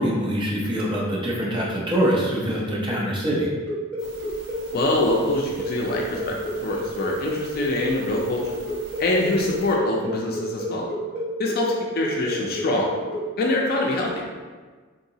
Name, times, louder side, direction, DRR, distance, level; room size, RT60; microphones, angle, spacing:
voice 1, 0.0-3.5, equal, 25° right, -4 dB, 0.7 m, -24 dB
sound 1, 3.3-13.2, left 1 dB, 10° right, 1.3 m, -31 dB
sound 2, 4.0-9.7, right 1 dB, 65° right, 0.8 m, -43 dB
voice 2, 4.7-6.3 6.6-8.6 9.0-10.8 11.4-12.9 13.4-14.2, left 2 dB, 50° left, -1 dB, 0.4 m, -24 dB
3.7 x 2.8 x 2.7 m, 1.4 s
head